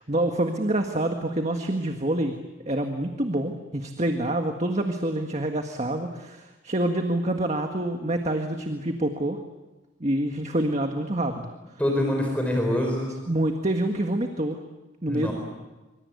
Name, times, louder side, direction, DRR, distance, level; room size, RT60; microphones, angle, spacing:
voice 1, 0.0-2.3 2.7-9.4 10.0-11.5 13.3-14.6 15.0-15.3, right 1 dB, 35° right, 4 dB, 1.7 m, -26 dB
voice 2, 11.8-13.1 15.1-15.3, left 1 dB, 5° left, 1 dB, 4.2 m, -25 dB
25.5 x 25.5 x 8.3 m, 1.1 s
head